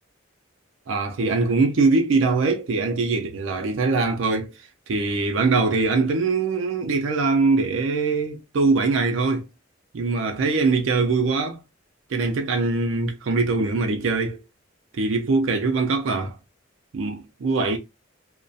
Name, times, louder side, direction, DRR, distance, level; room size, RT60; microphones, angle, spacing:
voice 1, 0.9-4.5 4.9-9.5 9.9-11.6 12.1-14.4 15.0-16.4 16.9-17.8, right 3 dB, 65° right, 0.4 m, -22 dB
2.3 x 2.1 x 2.5 m
head